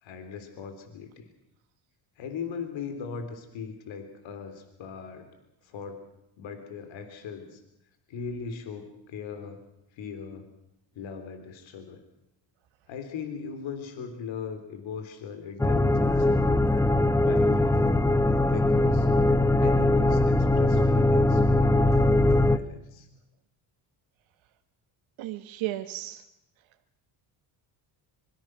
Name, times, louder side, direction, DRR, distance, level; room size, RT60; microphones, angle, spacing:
voice 1, 0.0-1.3 2.2-5.3 5.6-6.0 6.4-7.6 8.1-9.6 9.9-10.5 10.9-12.0 12.9-16.7 17.2-17.8 18.5-19.1 19.6-23.1, left 6 dB, 70° left, 7 dB, 3.6 m, -39 dB
sound 1, 15.6-22.6, left 2 dB, 5° left, 0.8 m, -21 dB
voice 2, 25.2-26.2, right 15 dB, 70° right, 7 dB, 1.4 m, -34 dB
25.5 x 23.0 x 6.3 m, 0.83 s
cardioid pair, 95°, 48 cm